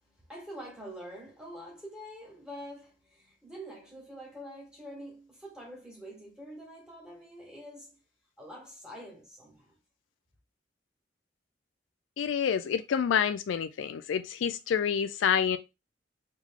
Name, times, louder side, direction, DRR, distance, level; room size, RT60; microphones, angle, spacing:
voice 1, 0.0-8.0 8.4-9.8, equal, 5° right, 1.8 m, -46 dB
voice 2, 12.2-15.6, left 7 dB, 85° left, 0.3 m, -28 dB
3.6 x 3.1 x 3.6 m
head